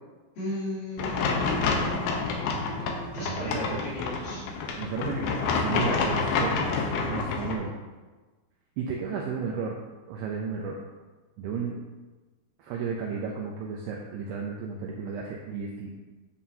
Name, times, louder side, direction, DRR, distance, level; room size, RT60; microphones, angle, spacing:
voice 1, 0.4-4.4, left 1 dB, 55° left, -8 dB, 4.0 m, -36 dB
sound 1, 1.0-7.5, left 4 dB, 75° left, 2.5 m, -28 dB
voice 2, 3.2-3.8 4.8-7.8 8.8-9.7 10.1-10.8 11.4-11.8 12.6-15.9, right 5 dB, 80° right, -1 dB, 2.4 m, -33 dB
10.5 x 7.4 x 2.8 m, 1.3 s
omnidirectional pair, 5.4 m